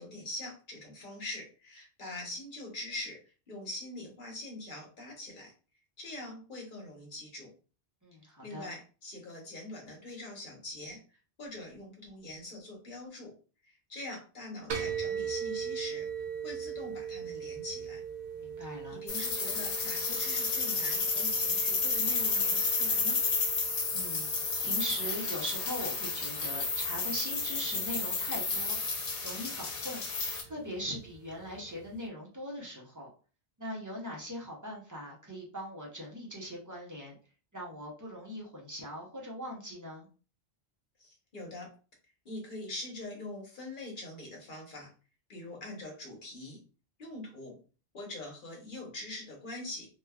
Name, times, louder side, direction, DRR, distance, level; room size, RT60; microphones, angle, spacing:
voice 1, 0.0-3.2 3.5-5.5 6.0-7.5 8.4-11.0 11.4-13.3 13.6-16.1 16.4-18.0 18.7-23.2 41.0-41.7 42.2-44.9 45.3-46.6 47.0-47.6 47.9-49.9, left 2 dB, 50° left, -1 dB, 1.1 m, -43 dB
voice 2, 8.0-8.7 18.4-19.0 23.9-28.8 29.2-30.0 30.4-33.1 33.6-37.2 37.5-40.1 45.4-45.6, equal, 20° right, -3 dB, 0.7 m, -40 dB
sound 1, 14.7-32.0, right 7 dB, 60° right, 0.5 m, -42 dB
sound 2, 19.1-30.4, left 4 dB, 90° left, 1.0 m, -31 dB
3.0 x 2.2 x 2.3 m, 0.36 s
omnidirectional pair, 1.1 m